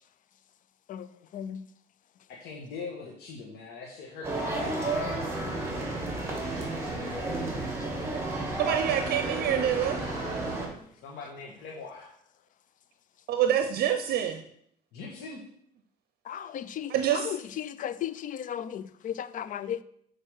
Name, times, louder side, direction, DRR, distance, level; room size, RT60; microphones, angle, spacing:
voice 1, 0.9-1.7 7.8-7.9 16.2-19.8, left 10 dB, 50° left, 0.5 m, -36 dB
voice 2, 2.3-5.0 11.0-12.1 14.9-15.4, left 4 dB, 80° left, 1.5 m, -41 dB
sound 1, 4.2-10.7, right 2 dB, 15° right, 2.5 m, -32 dB
voice 3, 8.6-10.0 13.3-14.4 16.9-17.3, right 10 dB, 65° right, 0.7 m, -26 dB
6.4 x 4.9 x 6.3 m
cardioid pair, 110°, 17 cm